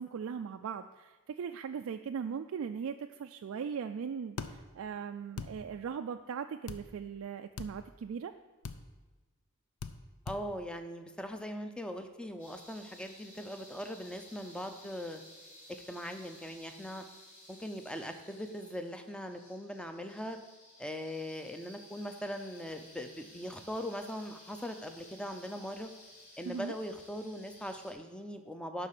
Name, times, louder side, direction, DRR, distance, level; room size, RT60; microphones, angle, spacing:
voice 1, 0.0-8.3 26.4-26.8, right 6 dB, 65° right, 6 dB, 0.3 m, -39 dB
sound 1, 4.4-4.5 5.4-5.5 6.7-6.8 7.6-7.7 8.6-8.8 9.8-10.0 10.3-10.4, left 5 dB, 75° left, 0.5 m, -40 dB
voice 2, 10.3-15.2 15.9-17.0 17.5-20.4 20.8-25.9 26.4-28.9, equal, 5° left, 7 dB, 0.5 m, -40 dB
sound 2, 12.4-27.9, left 1 dB, 35° left, 3.4 m, -56 dB
11.0 x 4.1 x 6.6 m, 1.2 s
head